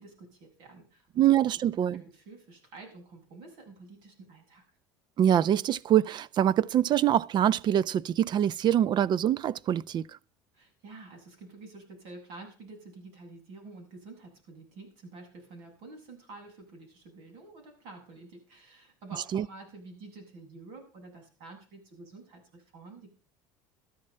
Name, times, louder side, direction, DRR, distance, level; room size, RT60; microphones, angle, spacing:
voice 1, 0.0-1.2 1.8-4.6 10.5-23.1, right 3 dB, 70° right, 7.5 m, -49 dB
voice 2, 1.2-2.0 5.2-10.1 19.3-19.5, right 10 dB, 45° right, 0.6 m, -24 dB
13.0 x 11.0 x 5.6 m
hypercardioid pair, 80°, 10 cm